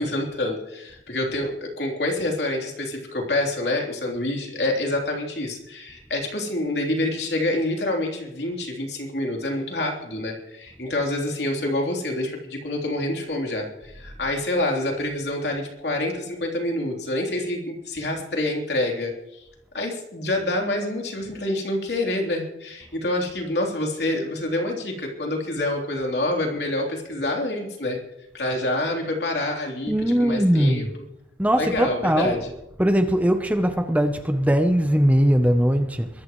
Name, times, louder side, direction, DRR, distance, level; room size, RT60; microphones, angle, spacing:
voice 1, 0.0-19.1 19.7-28.0 28.3-29.9 30.2-30.9 31.5-32.5, left 1 dB, 65° left, 3.5 m, -27 dB
voice 2, 29.9-30.9 31.4-32.4 32.8-36.1, equal, 10° right, 0.7 m, -20 dB
23.0 x 14.0 x 3.2 m
head